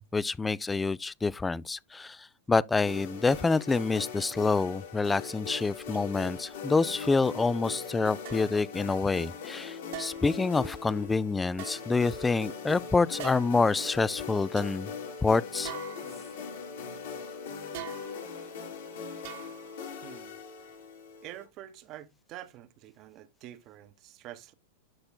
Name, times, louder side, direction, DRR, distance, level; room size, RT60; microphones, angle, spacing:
voice 1, 0.0-14.9 15.2-15.7, left 3 dB, 10° left, 0.3 m, -27 dB
sound 1, 2.9-21.4, left 6 dB, 75° left, 3.4 m, -40 dB
sound 2, 3.3-3.4 3.9-4.2 4.9-5.0 5.9-6.0 7.0-7.1 8.2-8.6 9.9-10.4 11.5-12.4 13.2-13.7 14.1-14.2 14.6-14.7 15.6-16.5 17.7-18.4 19.2-19.8 20.2-20.3, right 13 dB, 60° right, 1.3 m, -44 dB
voice 2, 20.0-20.4 21.2-24.5, right 13 dB, 40° right, 0.9 m, -47 dB
12.5 x 4.3 x 2.2 m
hypercardioid pair, 115°, 0 cm